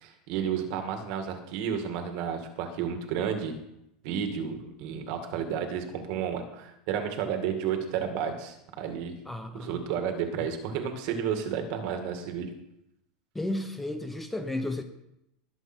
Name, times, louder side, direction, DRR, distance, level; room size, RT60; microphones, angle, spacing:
voice 1, 0.0-3.5 4.0-9.2 9.5-12.5, right 7 dB, 55° right, 5 dB, 2.2 m, -32 dB
voice 2, 9.3-9.9 13.3-14.8, left 1 dB, 5° left, 7 dB, 0.9 m, -33 dB
20.0 x 7.8 x 4.5 m, 0.82 s
supercardioid pair, 155°, 3 cm